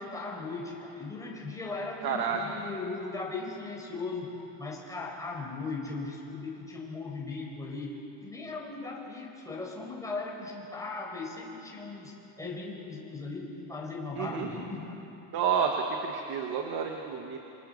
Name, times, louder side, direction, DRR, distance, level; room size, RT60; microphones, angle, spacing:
voice 1, 0.0-4.3 4.6-7.9 8.2-15.0, left 3 dB, 5° left, -2 dB, 4.7 m, -38 dB
voice 2, 2.0-2.4 14.2-14.5 15.3-17.4, right 7 dB, 50° right, 3 dB, 1.8 m, -30 dB
27.5 x 26.5 x 6.7 m, 3.0 s
cardioid pair, 160°, 47 cm